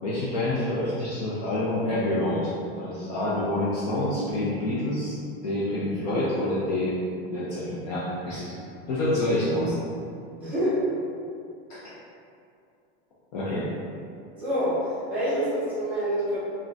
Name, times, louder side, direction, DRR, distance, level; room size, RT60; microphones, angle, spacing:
voice 1, 0.0-5.2 5.4-7.0 7.3-8.5 8.9-9.8 11.7-11.9 13.3-13.7, left 1 dB, 40° left, -8 dB, 0.4 m, -27 dB
voice 2, 10.4-10.8 14.4-16.4, equal, 5° right, -13 dB, 0.8 m, -27 dB
3.5 x 2.2 x 2.5 m, 2.4 s
supercardioid pair, 175°, 31 cm